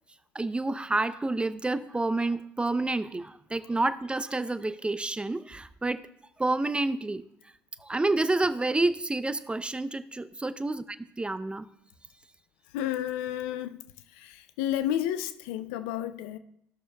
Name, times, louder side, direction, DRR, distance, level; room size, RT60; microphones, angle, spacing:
voice 1, 0.3-6.0 6.4-7.2 7.8-10.8 11.2-11.6, right 2 dB, 15° right, 0.6 m, -29 dB
voice 2, 12.7-13.8 14.1-16.4, left 11 dB, 75° left, 0.5 m, -31 dB
16.0 x 6.3 x 2.3 m
hypercardioid pair, 60°, 7 cm